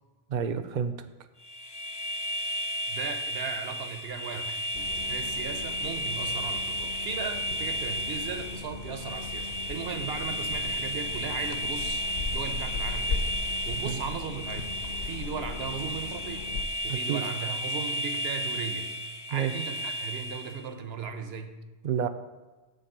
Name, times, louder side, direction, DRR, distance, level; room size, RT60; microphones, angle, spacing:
voice 1, 0.3-0.9 13.8-13.9 16.9-17.2 19.3-19.5 21.8-22.1, right 8 dB, 55° right, 10 dB, 0.6 m, -29 dB
sound 1, 1.4-20.6, equal, 30° left, 0.6 m, -33 dB
voice 2, 2.9-13.3 13.7-14.7 15.0-16.5 16.8-18.9 19.3-21.6, right 6 dB, 75° right, 7 dB, 1.0 m, -37 dB
sound 2, 4.7-16.6, left 4 dB, 65° left, 0.9 m, -38 dB
9.2 x 4.0 x 6.6 m, 1.2 s
omnidirectional pair, 1.1 m